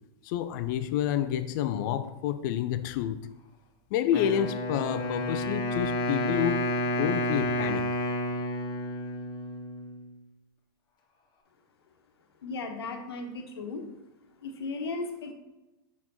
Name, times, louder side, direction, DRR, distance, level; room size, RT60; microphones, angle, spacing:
voice 1, 0.2-3.3 3.9-6.7 7.0-7.9, left 10 dB, 50° left, 0.4 m, -29 dB
Wind instrument woodwind instrument, 4.1-10.1, equal, 35° left, 1.4 m, -30 dB
voice 2, 12.4-13.9 14.4-15.3, left 3 dB, 80° left, 1.1 m, -36 dB
5.9 x 4.3 x 4.2 m
hypercardioid pair, 110°, 13 cm